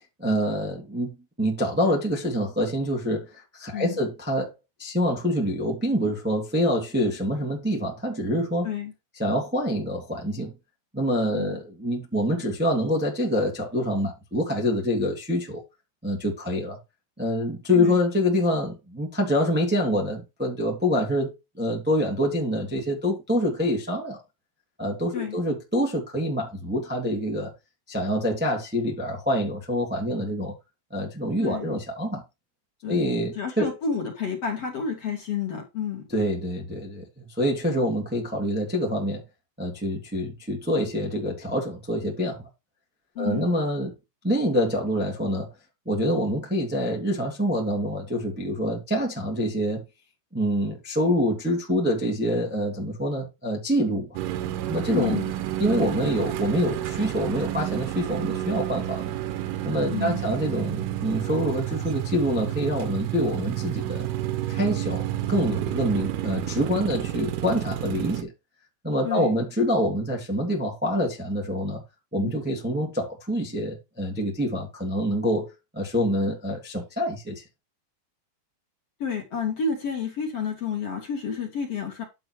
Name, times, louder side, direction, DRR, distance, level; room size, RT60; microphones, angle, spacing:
voice 1, 0.2-1.1 1.4-4.5 4.8-8.7 9.2-10.5 10.9-15.6 16.0-16.8 17.2-24.2 24.8-27.5 27.9-30.5 30.9-32.2 32.9-33.7 36.1-39.2 39.6-42.4 43.2-43.9 44.2-45.5 45.8-49.8 50.3-54.2 54.7-55.2 55.6-59.1 59.6-64.1 64.5-68.3 68.8-71.8 72.1-77.4, equal, 15° right, 0.3 m, -26 dB
voice 2, 33.3-36.0 43.1-43.5 54.9-55.2 59.9-60.2 69.0-69.3 72.2-72.6 79.0-82.0, left 6 dB, 40° left, 2.7 m, -30 dB
sound 1, 54.2-68.2, right 12 dB, 75° right, 3.4 m, -30 dB
11.5 x 7.3 x 3.1 m
omnidirectional pair, 6.0 m